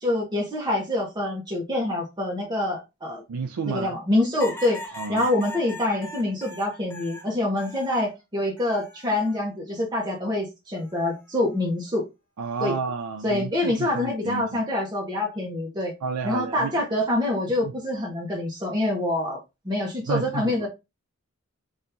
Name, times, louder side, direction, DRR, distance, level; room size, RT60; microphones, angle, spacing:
voice 1, 0.0-3.2 3.6-4.8 5.1-12.0 12.6-12.7 13.2-15.9 16.2-19.4 19.6-20.7, left 1 dB, 20° right, 0.9 m, -26 dB
voice 2, 3.3-3.9 4.9-5.3 12.4-14.6 16.0-16.7 17.6-17.7 20.1-20.7, right 5 dB, 80° right, 0.4 m, -31 dB
sound 1, 4.4-8.1 8.6-9.4 10.7-11.2, left 1 dB, 10° left, 0.6 m, -40 dB
2.9 x 2.7 x 3.4 m
head